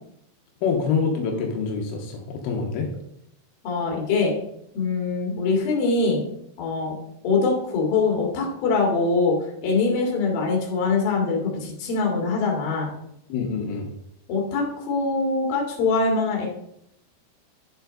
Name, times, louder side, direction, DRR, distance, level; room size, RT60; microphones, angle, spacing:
voice 1, 0.6-2.9 13.3-13.9, left 5 dB, 85° left, 1 dB, 3.7 m, -26 dB
voice 2, 3.6-4.3 4.7-6.2 6.6-7.0 7.2-9.4 9.6-12.9 14.3-16.5, left 4 dB, 55° left, -1 dB, 3.6 m, -23 dB
10.0 x 6.8 x 4.0 m, 0.75 s
omnidirectional pair, 5.7 m